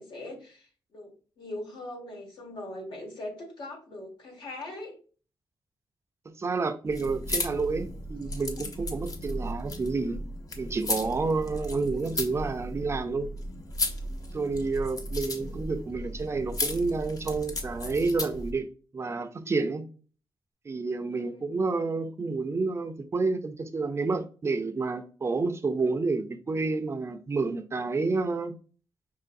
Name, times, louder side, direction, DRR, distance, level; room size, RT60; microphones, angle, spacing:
voice 1, 0.0-5.0 8.3-8.4 15.3-15.6 21.2-21.5, left 1 dB, 75° left, 1.8 m, -41 dB
voice 2, 6.4-10.2 10.6-13.3 14.3-18.7 18.9-19.9 20.7-28.5, right 3 dB, 30° right, 0.5 m, -29 dB
sound 1, 6.9-18.5, left 1 dB, 45° left, 0.8 m, -35 dB
5.6 x 3.0 x 2.6 m
wide cardioid pair, 125°, 8 cm